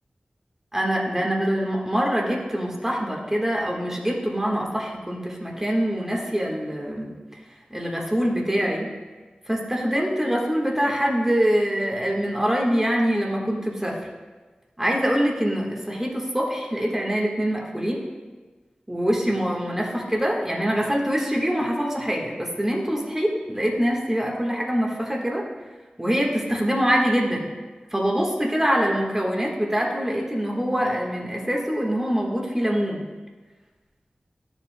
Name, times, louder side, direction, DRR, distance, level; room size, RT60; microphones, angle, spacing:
voice 1, 0.7-7.1 7.7-8.9 9.5-14.0 14.8-18.0 18.9-25.4 26.0-27.5 27.9-33.0, equal, 15° right, -2 dB, 1.5 m, -24 dB
12.5 x 7.4 x 2.2 m, 1.3 s
wide cardioid pair, 70°, 3 cm